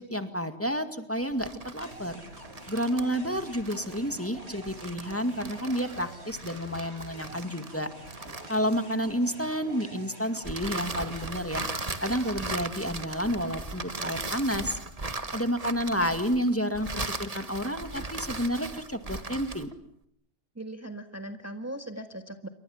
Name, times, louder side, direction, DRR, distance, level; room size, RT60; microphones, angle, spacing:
voice 1, 0.0-2.2 2.7-7.9 8.5-11.7 12.0-14.8 15.3-16.9 17.2-19.7, equal, 10° left, 8 dB, 2.1 m, -30 dB
sound 1, 1.3-9.1 10.4-19.7, right 2 dB, 35° right, 1.8 m, -38 dB
sound 2, 1.8-12.5, right 1 dB, 70° right, 4.7 m, -46 dB
voice 2, 20.5-22.5, right 1 dB, 15° right, 7 dB, 1.6 m, -39 dB
29.0 x 24.5 x 7.3 m, 0.67 s
omnidirectional pair, 1.2 m